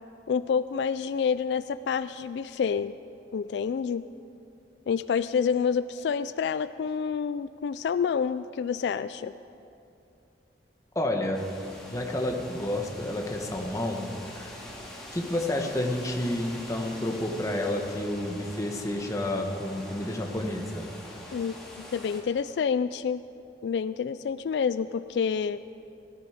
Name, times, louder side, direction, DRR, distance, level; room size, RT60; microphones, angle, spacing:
voice 1, 0.3-3.0 3.3-4.0 4.9-9.3 21.3-23.2 23.6-25.6, left 6 dB, 75° left, 14 dB, 0.3 m, -28 dB
voice 2, 10.9-11.4 11.9-14.6 15.1-20.9, left 1 dB, 20° left, 2 dB, 1.3 m, -30 dB
sound 1, 11.3-22.2, left 1 dB, 5° left, 2.3 m, -44 dB
17.5 x 13.5 x 5.0 m, 2.6 s
head